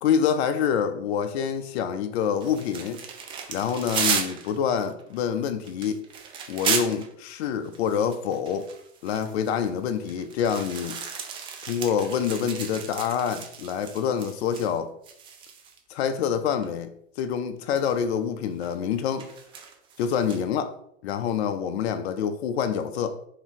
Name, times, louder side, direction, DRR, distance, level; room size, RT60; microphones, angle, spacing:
voice 1, 0.0-3.0 3.5-6.0 6.5-8.7 9.0-11.0 11.6-14.9 15.9-16.9 17.2-19.3 20.0-20.8 21.0-23.1, left 7 dB, 70° left, 9 dB, 0.5 m, -26 dB
sound 1, 2.4-7.1 7.7-14.8 15.0-15.8 16.6-16.7 17.7-18.0 18.6-20.4, right 6 dB, 15° right, 0.3 m, -34 dB
3.5 x 2.7 x 3.6 m, 0.70 s
hypercardioid pair, 120°, 34 cm